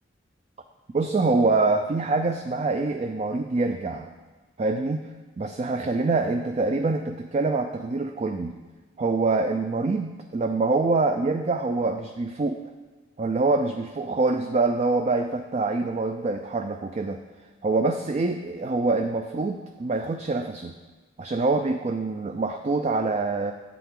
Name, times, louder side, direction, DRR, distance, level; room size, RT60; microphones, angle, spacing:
voice 1, 0.9-4.1 4.6-5.1 5.4-8.6 9.0-12.6 13.2-17.2 17.6-20.8 21.2-23.5, right 3 dB, 35° right, 6 dB, 0.4 m, -25 dB
8.5 x 8.0 x 3.7 m, 1.3 s
head